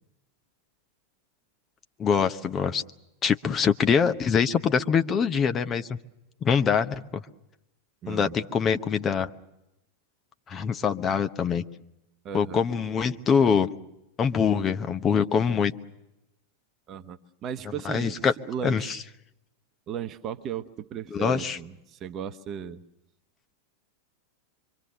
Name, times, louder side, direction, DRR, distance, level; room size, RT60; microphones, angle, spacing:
voice 1, 2.0-2.8 3.2-6.0 6.4-7.2 8.1-9.3 10.5-11.6 12.3-13.7 14.2-15.7 17.8-18.3 18.6-19.0 21.1-21.6, left 6 dB, 25° left, 9 dB, 1.0 m, -24 dB
voice 2, 8.0-8.4 12.2-12.6 16.9-19.0 19.9-22.8, right 9 dB, 30° right, 11 dB, 1.0 m, -36 dB
25.5 x 24.5 x 6.7 m, 0.87 s
figure-of-eight pair, 90°, 0 cm